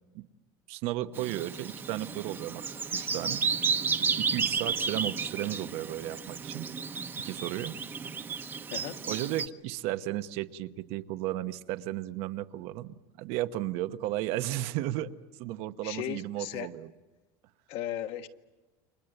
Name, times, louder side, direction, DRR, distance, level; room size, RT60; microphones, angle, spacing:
voice 1, 0.7-2.6 2.9-3.4 4.2-6.7 7.2-7.8 9.1-16.9, right 14 dB, 55° right, 11 dB, 1.0 m, -34 dB
Bird vocalization bird call bird song, 1.2-9.5, right 5 dB, 15° right, 1.0 m, -32 dB
voice 2, 15.8-16.7 17.7-18.3, left 12 dB, 50° left, 8 dB, 1.3 m, -36 dB
29.5 x 24.5 x 7.9 m, 1.2 s
cardioid pair, 155°, 12 cm